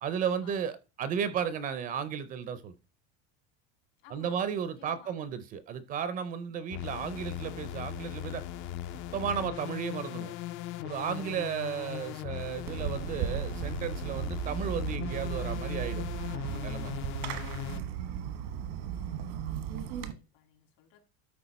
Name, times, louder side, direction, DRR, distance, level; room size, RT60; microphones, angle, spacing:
voice 1, 0.0-2.7 4.1-8.4 9.1-10.3 10.8-16.0 16.4-16.9, right 7 dB, 25° right, 0.5 m, -34 dB
voice 2, 4.0-5.2 19.1-21.0, left 11 dB, 70° left, 2.9 m, -58 dB
sound 1, 6.7-17.8, left 12 dB, 40° left, 0.4 m, -39 dB
Fireworks, 12.7-20.1, right 8 dB, 85° right, 1.4 m, -36 dB
13.0 x 4.8 x 4.1 m
cardioid pair, 175°, 32 cm